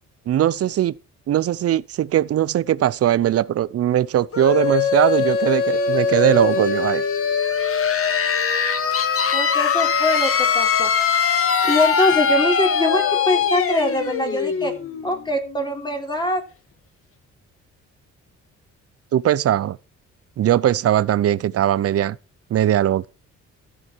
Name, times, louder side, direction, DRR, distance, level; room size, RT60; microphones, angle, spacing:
voice 1, 0.3-0.9 1.3-7.0 19.1-19.8 20.4-22.2 22.5-23.1, right 11 dB, 50° right, 0.6 m, -20 dB
sound 1, 4.3-15.9, left 6 dB, 45° left, 1.7 m, -21 dB
voice 2, 9.3-10.9 11.6-14.7 15.0-16.4, left 1 dB, 15° left, 3.4 m, -23 dB
14.5 x 7.5 x 4.5 m
cardioid pair, 90°, 30 cm